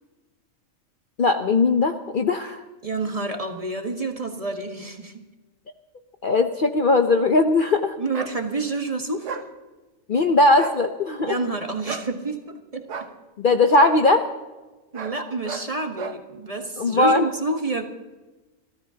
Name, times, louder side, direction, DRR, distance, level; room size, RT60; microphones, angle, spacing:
voice 1, 1.2-2.6 6.2-7.9 10.1-11.3 13.4-14.3 16.8-17.3, left 3 dB, 45° left, 5 dB, 0.8 m, -19 dB
voice 2, 2.8-5.2 8.0-9.4 11.3-12.9 14.9-17.8, right 2 dB, 25° right, 3 dB, 1.4 m, -28 dB
sound 1, 8.1-8.3 9.2-9.5 10.5-10.8 11.9-12.1 12.9-13.1 13.8-14.0 14.9-15.2 15.4-15.7 16.0-16.2, right 5 dB, 65° right, 1.3 m, -33 dB
28.5 x 13.5 x 2.8 m, 1.2 s
omnidirectional pair, 1.4 m